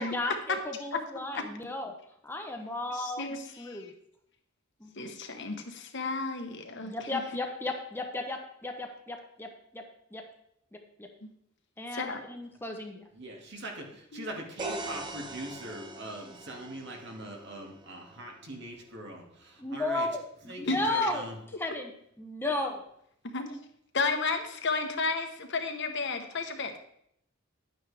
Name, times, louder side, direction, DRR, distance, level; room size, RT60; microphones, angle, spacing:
voice 1, 0.0-1.9 2.2-3.3 3.6-3.9 4.8-5.1 6.8-9.8 10.1-10.2 10.7-11.1 11.8-13.0 19.6-21.9 22.2-22.8, left 2 dB, 10° left, 3 dB, 0.9 m, -34 dB
voice 2, 2.9-3.9 5.0-7.2 11.9-12.2 14.1-14.3 20.7-21.1 23.3-23.6 23.9-26.8, left 4 dB, 60° left, 5 dB, 1.2 m, -33 dB
voice 3, 13.1-20.1 20.4-21.4, right 1 dB, 55° right, 1 dB, 2.2 m, -41 dB
sound 1, 14.6-18.4, right 2 dB, 20° right, 0.9 m, -42 dB
11.0 x 9.1 x 3.5 m, 0.71 s
head